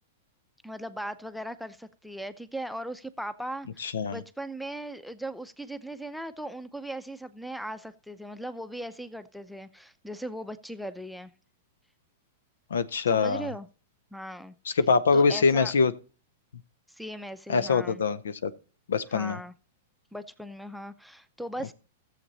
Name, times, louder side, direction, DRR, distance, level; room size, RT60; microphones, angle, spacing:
voice 1, 0.6-11.3 13.1-13.7 14.1-14.8 15.1-15.7 16.9-18.0 19.1-19.5 20.1-21.7, right 1 dB, ahead, 0.7 m, -38 dB
voice 2, 3.8-4.2 12.7-13.5 14.7-15.9 17.5-18.5 18.9-19.4, left 5 dB, 80° left, 0.7 m, -24 dB
13.5 x 7.4 x 4.1 m
hypercardioid pair, 115°, 0 cm